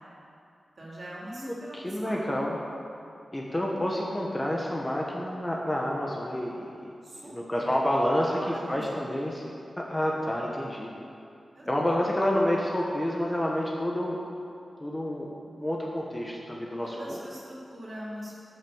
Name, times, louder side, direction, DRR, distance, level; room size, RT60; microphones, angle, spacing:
voice 1, 0.8-2.3 7.0-7.7 8.3-8.8 11.5-11.9 16.8-18.3, right 1 dB, 45° right, -5 dB, 3.0 m, -42 dB
voice 2, 1.4-2.6 3.3-6.9 7.2-8.4 8.7-9.4 9.8-10.9 11.7-14.2 14.8-17.2, left 1 dB, 15° left, -2 dB, 1.1 m, -29 dB
13.5 x 6.6 x 7.1 m, 2.7 s
wide cardioid pair, 160°, 0 cm